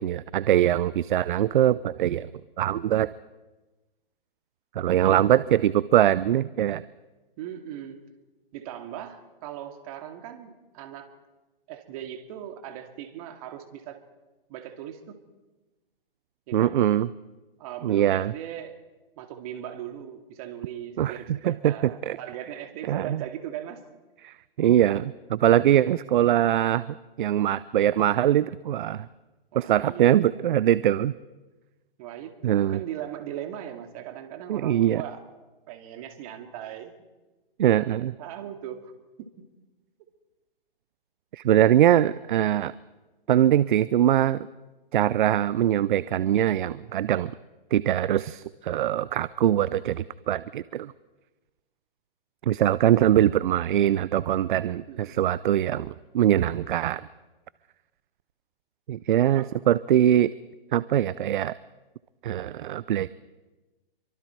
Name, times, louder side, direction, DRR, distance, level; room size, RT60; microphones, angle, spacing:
voice 1, 0.0-2.3 2.6-3.1 4.7-6.8 16.5-17.1 17.8-18.3 21.0-22.2 22.9-23.2 24.2-29.1 29.5-31.1 32.4-32.8 34.5-35.0 37.6-38.1 41.3-42.7 43.3-44.5 44.9-47.3 47.7-50.9 52.4-57.0 58.9-60.3 60.7-61.5 62.2-63.1, right 11 dB, 60° right, 18 dB, 0.6 m, -22 dB
voice 2, 7.4-8.0 8.5-11.1 11.7-14.0 14.5-15.2 16.5-16.7 17.6-18.8 19.2-23.8 29.5-30.3 32.0-35.2 35.7-37.0 37.6-38.9 54.9-55.2 59.4-59.5, right 11 dB, 40° right, 6 dB, 2.4 m, -39 dB
27.0 x 24.0 x 4.6 m, 1.1 s
hypercardioid pair, 135°, 29 cm